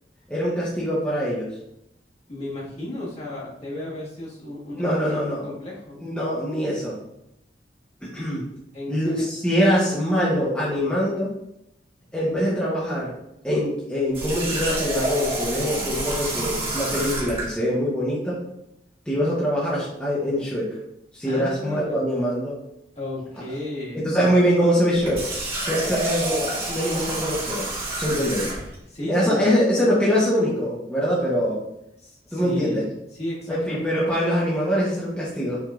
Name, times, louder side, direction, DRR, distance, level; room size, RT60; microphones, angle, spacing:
voice 1, 0.3-1.5 4.7-5.4 6.0-7.0 8.0-8.5 8.9-11.3 12.1-13.1 13.4-18.4 19.1-20.8 21.1-22.6 24.0-25.3 25.6-27.7 28.0-28.5 29.1-31.6 32.3-32.9 33.5-35.6, equal, 5° left, -7 dB, 1.0 m, -23 dB
voice 2, 2.3-6.0 8.7-9.3 21.2-22.1 22.9-24.3 25.8-26.0 28.9-29.4 32.0-33.8, left 1 dB, 40° left, -5 dB, 1.5 m, -34 dB
Water tap faucet, 14.1-17.5 24.9-28.8, right 1 dB, 35° right, 1.7 m, -28 dB
5.9 x 3.6 x 2.4 m, 0.81 s
head